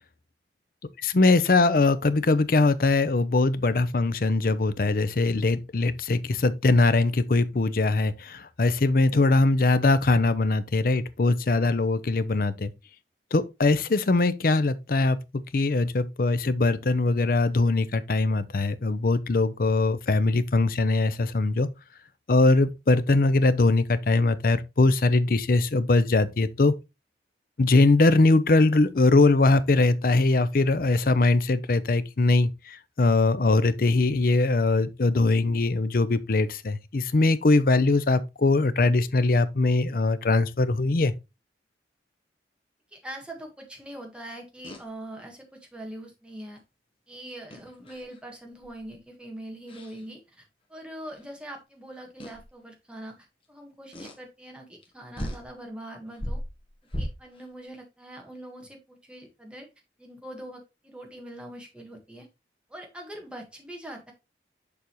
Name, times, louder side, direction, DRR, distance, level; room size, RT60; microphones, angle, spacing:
voice 1, 1.0-12.7 13.3-21.7 22.3-26.7 27.6-41.1, left 3 dB, 50° left, 0.5 m, -22 dB
voice 2, 42.9-46.6 47.1-56.4 57.0-59.7 60.0-62.3 62.7-64.1, right 1 dB, 5° right, 1.5 m, -42 dB
sound 1, 44.6-44.8 47.5-48.2 48.6-48.9 49.7-50.0 51.1-51.2 52.2-52.5 53.9-54.2 54.8-54.9 55.2-55.5 56.1-57.5, equal, 30° left, 1.2 m, -36 dB
6.8 x 5.4 x 3.0 m
head